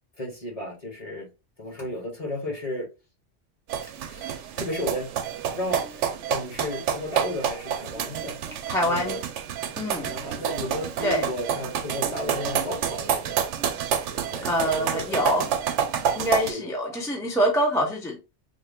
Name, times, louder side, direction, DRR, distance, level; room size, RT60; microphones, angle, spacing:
voice 1, 0.2-1.3 1.6-2.9 3.8-5.1 5.5-6.0 6.3-8.4 8.9-9.2 10.0-15.4 16.5-17.0, left 1 dB, 35° left, 1.3 m, -34 dB
sound 1, 3.7-16.5, right 8 dB, 90° right, 0.9 m, -29 dB
voice 2, 8.7-9.2 9.8-10.1 11.0-11.3 14.4-15.5 16.2-18.2, equal, 5° left, 0.7 m, -25 dB
3.6 x 2.2 x 3.5 m
omnidirectional pair, 1.2 m